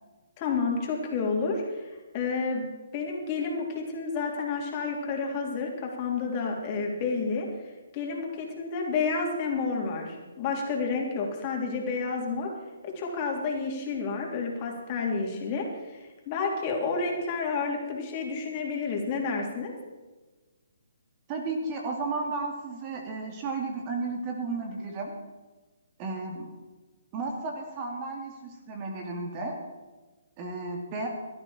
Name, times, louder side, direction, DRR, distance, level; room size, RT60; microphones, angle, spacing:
voice 1, 0.4-2.6 2.9-7.5 7.9-12.5 12.8-19.7, left 4 dB, 30° left, 0 dB, 3.4 m, -30 dB
voice 2, 21.3-25.1 26.0-26.5 27.1-29.6 30.4-31.1, right 3 dB, 30° right, 1 dB, 2.8 m, -33 dB
17.5 x 13.0 x 4.5 m, 1.2 s
hypercardioid pair, 150°, 0 cm